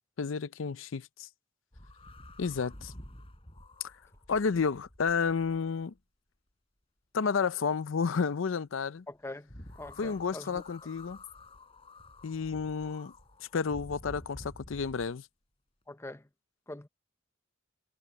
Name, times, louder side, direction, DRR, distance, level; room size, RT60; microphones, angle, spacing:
voice 1, 0.2-1.3 2.4-2.9 3.8-3.9 4.3-5.9 7.1-9.0 10.0-11.2 12.2-13.1 13.5-15.3, left 5 dB, 80° left, 0.5 m, -31 dB
sound 1, 1.7-6.0 9.5-15.1, left 1 dB, 30° left, 5.3 m, -50 dB
voice 2, 9.1-9.5 9.8-10.6 15.9-16.3 16.7-16.9, left 2 dB, 15° left, 0.9 m, -43 dB
head